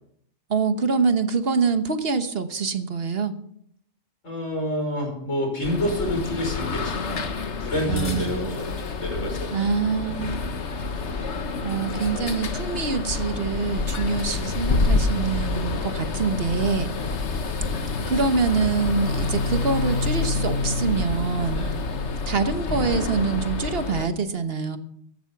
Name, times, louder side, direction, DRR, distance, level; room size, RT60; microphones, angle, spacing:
voice 1, 0.5-3.3 7.9-8.5 9.5-10.4 11.6-16.9 18.1-21.7 22.3-24.8, right 5 dB, 55° right, 9 dB, 1.4 m, -25 dB
voice 2, 4.2-7.3 7.6-9.5 10.0-10.3 11.3-11.5 11.9-12.3 16.9-17.3 21.5-21.8, left 1 dB, 90° left, 2 dB, 5.7 m, -29 dB
sound 1, 5.6-24.1, left 3 dB, 65° left, 1.5 m, -27 dB
14.5 x 12.0 x 5.9 m, 0.69 s
omnidirectional pair, 1.3 m